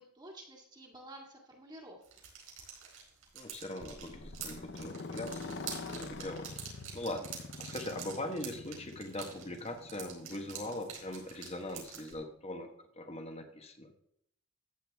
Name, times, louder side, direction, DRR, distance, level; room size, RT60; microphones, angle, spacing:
voice 1, 0.0-2.0, right 1 dB, 20° right, -1 dB, 1.9 m, -51 dB
sound 1, 2.0-12.1, right 7 dB, 70° right, 4.6 m, -47 dB
voice 2, 3.3-6.5 6.9-12.7 13.0-13.9, left 1 dB, 30° left, 5 dB, 1.3 m, -41 dB
Motorcycle, 3.9-12.0, left 3 dB, 50° left, 0.7 m, -46 dB
14.5 x 8.9 x 3.5 m, 0.74 s
head